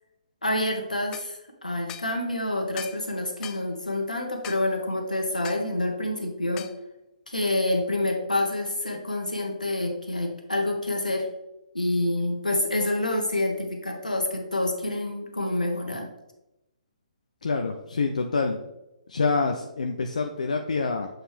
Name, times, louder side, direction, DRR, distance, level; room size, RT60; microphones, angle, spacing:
voice 1, 0.4-6.7 7.3-11.3 11.7-16.1, left 1 dB, 80° left, 2 dB, 1.4 m, -27 dB
sound 1, 1.1-1.3 1.9-2.1 2.8-3.0 3.4-3.6 4.4-4.6 5.4-5.7 6.6-6.8, left 11 dB, 15° left, 0.3 m, -40 dB
voice 2, 17.4-18.6 19.1-21.1, left 4 dB, 60° left, 4 dB, 0.6 m, -26 dB
7.6 x 4.5 x 3.4 m, 0.92 s
figure-of-eight pair, 130°, 4 cm